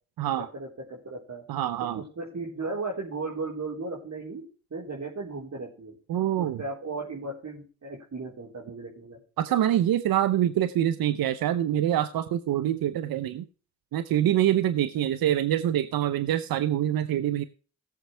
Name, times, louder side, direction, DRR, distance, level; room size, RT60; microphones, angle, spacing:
voice 1, 0.4-1.4 2.2-5.9 6.4-9.2, right 3 dB, 50° right, -3 dB, 4.2 m, -36 dB
voice 2, 1.5-2.0 6.1-6.6 9.4-13.4 13.9-17.4, right 11 dB, 75° right, 13 dB, 0.9 m, -25 dB
17.5 x 7.5 x 3.4 m, 0.38 s
supercardioid pair, 45°, 36 cm